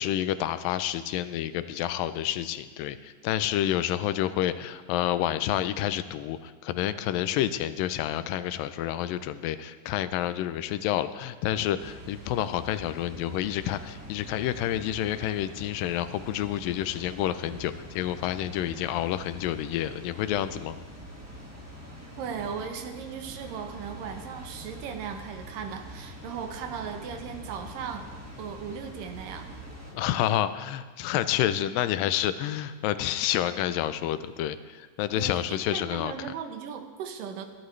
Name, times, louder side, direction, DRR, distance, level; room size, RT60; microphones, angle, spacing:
voice 1, 0.0-20.8 29.9-36.3, left 12 dB, 85° left, 12 dB, 2.3 m, -29 dB
Water, 11.8-29.9, equal, 10° right, 0.6 m, -44 dB
voice 2, 22.2-28.1 28.4-29.5 35.2-37.5, right 7 dB, 80° right, 6 dB, 2.7 m, -37 dB
22.0 x 11.5 x 3.2 m, 1.4 s
omnidirectional pair, 3.9 m